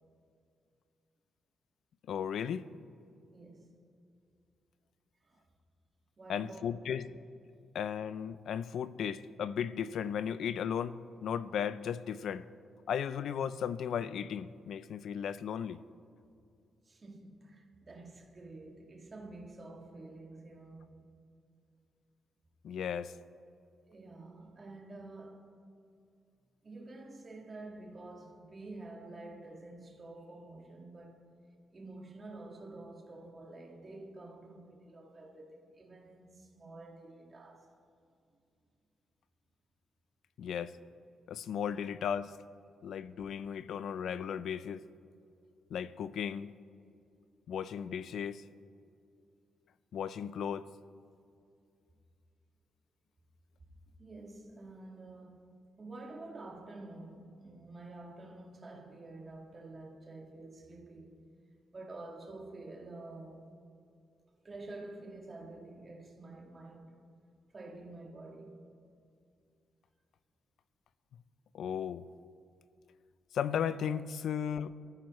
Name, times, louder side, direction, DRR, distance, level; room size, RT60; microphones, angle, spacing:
voice 1, 2.1-2.7 6.3-7.1 7.7-12.5 12.9-15.8 22.6-23.1 40.4-40.7 41.3-42.3 42.8-44.8 45.7-46.5 47.5-48.4 49.9-50.7 71.5-72.0 73.3-74.7, left 8 dB, 70° left, 0.5 m, -35 dB
voice 2, 3.3-3.7 5.2-5.5 6.2-7.0 16.8-21.1 23.9-25.6 26.6-31.2 31.7-37.7 42.7-42.8 54.0-55.4 55.8-61.1 61.7-63.5 64.4-67.0 67.5-68.6 74.1-74.2, right 2 dB, 25° right, 1.9 m, -49 dB
23.0 x 14.0 x 3.1 m
wide cardioid pair, 155°, 0 cm